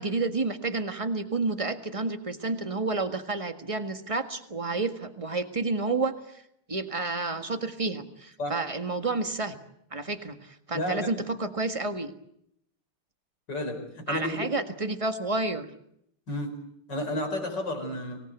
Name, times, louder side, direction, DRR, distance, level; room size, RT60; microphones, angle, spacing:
voice 1, 0.0-6.4 6.7-9.6 9.9-12.1 14.1-15.6, right 3 dB, 15° right, 8 dB, 1.4 m, -30 dB
voice 2, 10.7-11.1 13.5-14.4 16.3-16.5 16.9-18.2, left 1 dB, 55° left, 5 dB, 5.4 m, -31 dB
25.0 x 18.5 x 9.2 m, 0.75 s
omnidirectional pair, 2.3 m